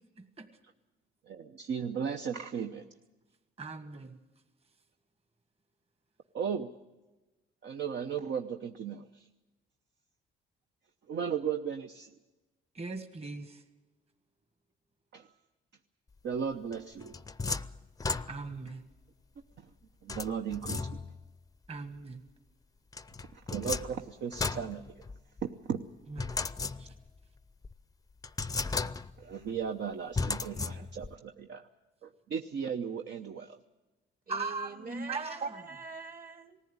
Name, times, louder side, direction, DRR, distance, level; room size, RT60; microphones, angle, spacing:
voice 1, 0.2-0.5 3.6-4.2 12.8-13.6 18.3-18.8 21.7-22.2 26.1-26.3 26.8-26.9 34.3-35.4, right 3 dB, 30° right, 1.7 m, -39 dB
voice 2, 1.3-2.9 6.3-6.7 7.6-9.3 11.1-12.1 15.1-15.3 16.2-17.1 19.6-19.7 20.0-21.0 23.3-25.0 25.4-25.8 29.2-31.7 32.0-33.6 35.4-35.5, right 7 dB, 65° right, 0.9 m, -36 dB
sound 1, 16.7-18.7 20.1-21.3 22.9-25.4 26.2-27.2 27.6-27.7 28.2-29.3 30.1-31.2, left 4 dB, 20° left, 0.6 m, -35 dB
voice 3, 34.3-36.6, right 5 dB, 45° right, 2.2 m, -45 dB
19.5 x 15.0 x 9.5 m
cardioid pair, 90°, 20 cm